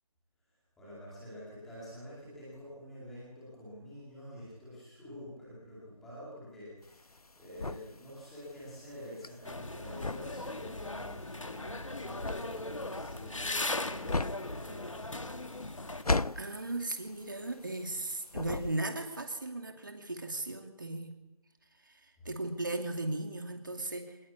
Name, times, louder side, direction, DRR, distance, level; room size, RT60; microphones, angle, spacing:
voice 1, 0.8-15.6 22.2-22.3, equal, ahead, -8 dB, 2.3 m, -48 dB
sound 1, 6.8-18.0 18.3-19.2, left 3 dB, 75° left, 1.0 m, -36 dB
sound 2, 9.4-16.0, left 2 dB, 55° left, 1.8 m, -38 dB
voice 2, 16.4-21.2 21.8-24.2, right 2 dB, 35° right, 5 dB, 2.6 m, -37 dB
25.5 x 20.5 x 8.4 m, 0.99 s
figure-of-eight pair, 175°, 19 cm